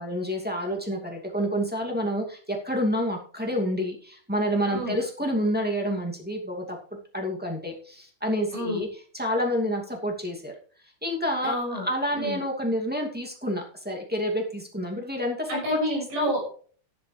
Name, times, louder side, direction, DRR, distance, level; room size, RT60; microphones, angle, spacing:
voice 1, 0.0-6.8 7.1-8.9 9.1-10.5 11.0-15.8, equal, 5° right, -1 dB, 1.6 m, -28 dB
voice 2, 8.5-8.8 11.4-11.8 12.1-12.4 15.5-16.5, equal, 60° right, -2 dB, 8.3 m, -28 dB
12.5 x 11.0 x 3.3 m, 0.43 s
omnidirectional pair, 4.0 m